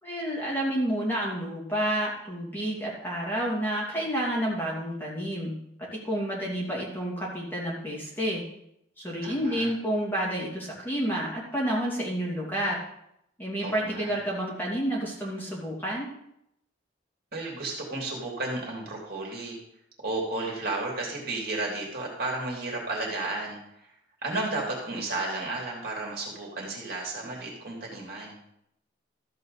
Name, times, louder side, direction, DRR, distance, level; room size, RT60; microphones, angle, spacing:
voice 1, 0.0-5.5 5.9-8.4 9.0-12.8 13.4-16.1, right 1 dB, 10° left, -5 dB, 2.7 m, -30 dB
voice 2, 9.2-9.7 13.6-14.1 17.3-19.6 20.0-23.6 24.2-28.4, right 2 dB, 55° right, -2 dB, 2.9 m, -33 dB
13.5 x 7.6 x 4.1 m, 0.77 s
head